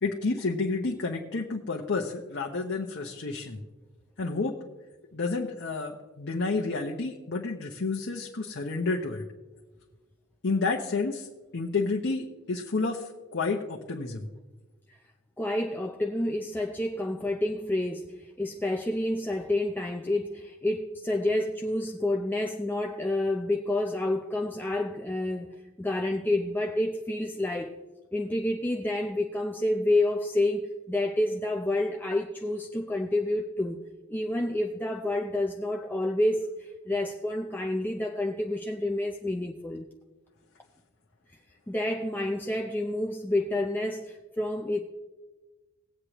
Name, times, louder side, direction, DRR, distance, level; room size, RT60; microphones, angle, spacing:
voice 1, 0.0-3.6 4.2-4.6 5.1-9.2 10.4-11.3 11.5-14.3, left 3 dB, 55° left, 0.8 m, -30 dB
voice 2, 15.4-27.7 28.1-33.8 34.1-39.9 41.7-44.8, left 1 dB, 10° left, 0.5 m, -29 dB
19.0 x 8.1 x 3.0 m
head